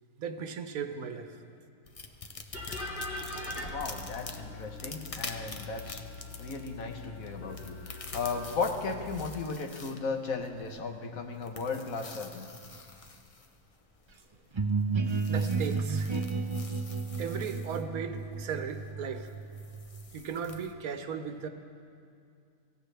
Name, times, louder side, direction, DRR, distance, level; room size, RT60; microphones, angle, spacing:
voice 1, 0.2-1.4 15.3-16.1 17.2-19.3 20.1-21.5, right 6 dB, 80° right, 8 dB, 1.3 m, -36 dB
sound 1, 1.8-20.7, left 3 dB, 30° left, 0.7 m, -48 dB
sound 2, 2.5-9.1, left 2 dB, 50° left, 2.3 m, -42 dB
voice 2, 3.7-6.0 6.4-12.5, left 4 dB, 70° left, 4 dB, 1.5 m, -35 dB
sound 3, 14.5-20.2, right 4 dB, 50° right, 0.3 m, -32 dB
24.5 x 15.0 x 3.4 m, 2.4 s
omnidirectional pair, 1.5 m